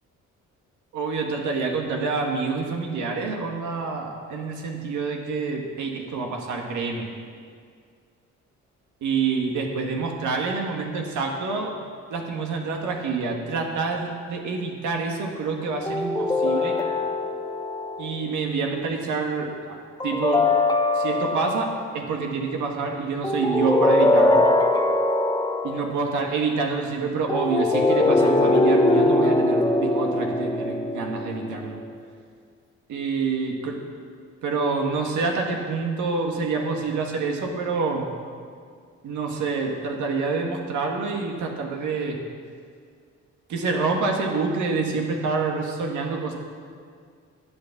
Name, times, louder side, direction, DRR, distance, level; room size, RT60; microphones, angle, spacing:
voice 1, 0.9-7.1 9.0-11.8 12.1-16.8 18.0-20.5 20.9-24.4 25.6-31.7 32.9-33.8 34.4-38.1 39.0-42.2 43.5-46.3, right 4 dB, 75° right, 1 dB, 1.9 m, -27 dB
sound 1, 15.9-18.3 20.0-21.8 23.2-26.0 27.3-31.8, left 2 dB, 15° left, 1.0 m, -22 dB
13.0 x 8.5 x 7.3 m, 2.1 s
cardioid pair, 90°, 30 cm